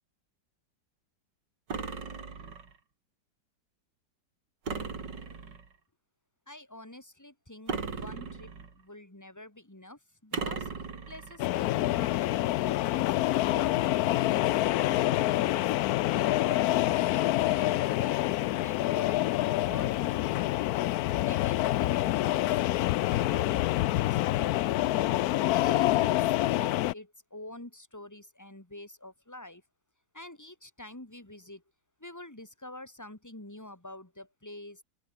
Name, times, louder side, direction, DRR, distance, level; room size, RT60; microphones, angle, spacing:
sound 1, 1.7-2.8 4.7-5.7 7.7-8.8 10.3-11.4, right 5 dB, 80° right, 3.5 m, -37 dB
voice 1, 6.5-10.7 11.1-13.2 13.5-15.8 16.1-17.1 17.5-18.3 18.5-19.2 19.5-20.9 21.2-25.1 25.4-29.6 30.1-31.6 32.0-34.8, left 1 dB, 10° left, 2.6 m, -47 dB
sound 2, 11.4-26.9, left 15 dB, 70° left, 0.9 m, -27 dB
open air
omnidirectional pair, 1.9 m